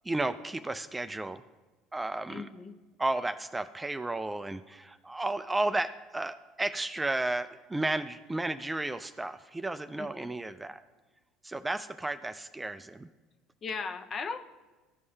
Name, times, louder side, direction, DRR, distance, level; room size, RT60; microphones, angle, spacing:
voice 1, 0.0-1.4 1.9-2.5 3.0-10.8 11.4-13.1, right 2 dB, 15° right, 10 dB, 0.4 m, -33 dB
voice 2, 2.3-2.7 9.9-10.3 13.6-14.4, left 5 dB, 40° left, 8 dB, 0.8 m, -37 dB
14.0 x 5.3 x 3.3 m, 1.3 s
hypercardioid pair, 80°, 0 cm